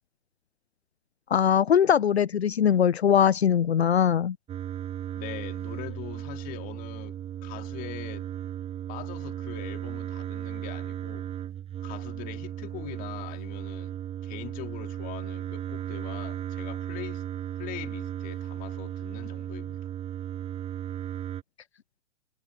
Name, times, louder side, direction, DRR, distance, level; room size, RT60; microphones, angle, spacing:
voice 1, 1.3-4.3, left 8 dB, 70° left, 0.6 m, -21 dB
sound 1, 4.5-21.4, right 10 dB, 15° right, 5.8 m, -36 dB
voice 2, 5.1-8.3 8.9-11.3 11.8-17.3 17.6-19.8, left 19 dB, 25° left, 3.0 m, -42 dB
figure-of-eight pair, 120°, 33 cm